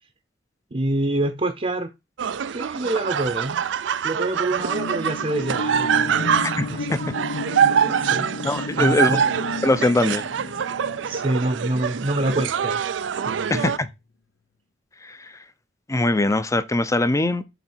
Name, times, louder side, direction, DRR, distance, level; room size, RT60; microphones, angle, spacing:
voice 1, 0.7-1.9 2.5-3.6 4.0-6.3 6.7-7.0 8.0-8.3 8.7-9.2 11.0-12.8 13.2-13.6, right 1 dB, 35° right, 0.8 m, -26 dB
sound 1, 2.2-13.8, right 7 dB, 70° right, 0.4 m, -24 dB
sound 2, 4.5-12.3 12.7-12.8, left 1 dB, 85° left, 0.8 m, -33 dB
voice 2, 6.6-7.0 8.4-9.2 9.6-10.3 13.5-13.9 15.0-15.2 15.9-17.4, left 2 dB, 15° left, 0.6 m, -21 dB
8.2 x 3.9 x 4.4 m
head